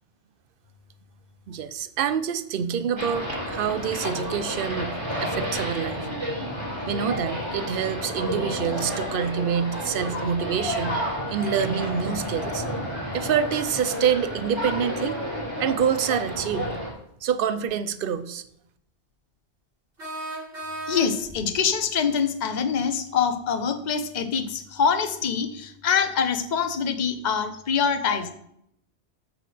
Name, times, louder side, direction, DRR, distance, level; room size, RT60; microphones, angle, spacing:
voice 1, 1.5-4.9 5.2-6.0 6.9-11.0 11.3-12.6 13.1-15.2 15.6-16.7 17.2-18.4, right 8 dB, 55° right, 12 dB, 0.8 m, -26 dB
sound 1, 3.0-16.9, equal, 25° right, 4.2 m, -31 dB
sound 2, 17.7-17.8 20.0-21.4, right 2 dB, 80° right, 3.5 m, -35 dB
voice 2, 20.9-28.4, left 6 dB, 45° left, 8 dB, 0.9 m, -25 dB
14.0 x 6.2 x 3.4 m, 0.74 s
omnidirectional pair, 1.2 m